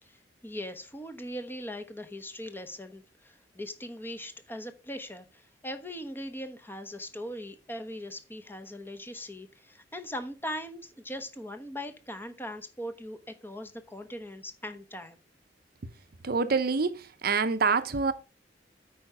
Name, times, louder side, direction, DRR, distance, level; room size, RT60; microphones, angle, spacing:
voice 1, 0.0-15.2, equal, 10° left, 1.2 m, -40 dB
voice 2, 16.2-18.1, right 4 dB, 55° right, 0.7 m, -26 dB
8.9 x 5.0 x 5.7 m
head